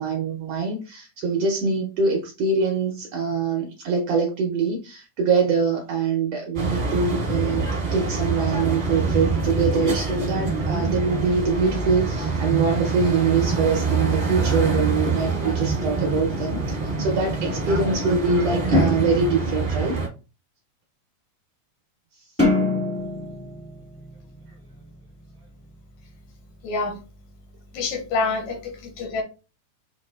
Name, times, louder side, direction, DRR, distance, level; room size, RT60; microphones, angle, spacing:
voice 1, 0.0-7.7 7.9-20.0 22.2-22.3, right 4 dB, 75° right, 1.4 m, -24 dB
sound 1, 6.5-20.1, right 3 dB, 55° right, 0.7 m, -25 dB
sound 2, 22.4-24.9, left 2 dB, 20° left, 0.4 m, -25 dB
voice 2, 26.6-27.0 27.7-29.2, left 3 dB, 75° left, 2.2 m, -27 dB
5.5 x 2.7 x 2.2 m
omnidirectional pair, 3.4 m